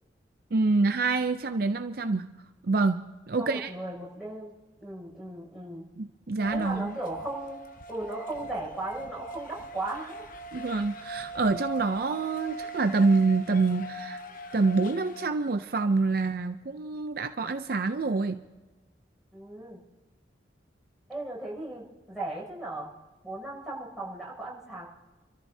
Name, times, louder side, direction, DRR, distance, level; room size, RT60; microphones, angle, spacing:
voice 1, 0.5-2.3 2.6-3.7 6.0-7.0 10.5-14.2 14.5-18.4, right 3 dB, 50° right, 8 dB, 0.5 m, -26 dB
voice 2, 3.4-4.5 4.8-5.9 6.5-7.6 7.9-10.2 19.3-19.8 21.1-22.9 23.2-24.9, right 2 dB, ahead, -6 dB, 6.3 m, -37 dB
sound 1, 6.4-15.3, right 1 dB, 45° left, 0.9 m, -40 dB
28.5 x 13.5 x 2.8 m, 1.2 s
head